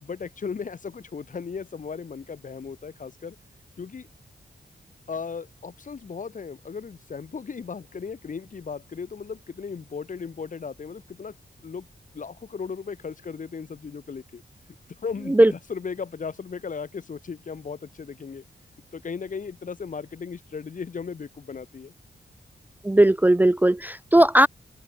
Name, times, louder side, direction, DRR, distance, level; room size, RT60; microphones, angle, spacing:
voice 1, 0.0-3.4 3.8-4.1 5.1-11.3 11.6-11.9 12.1-14.4 15.0-18.4 18.9-21.9, left 5 dB, 45° left, 1.4 m, -36 dB
voice 2, 22.8-24.5, right 1 dB, 10° right, 0.5 m, -17 dB
open air
wide cardioid pair, 115°, 18 cm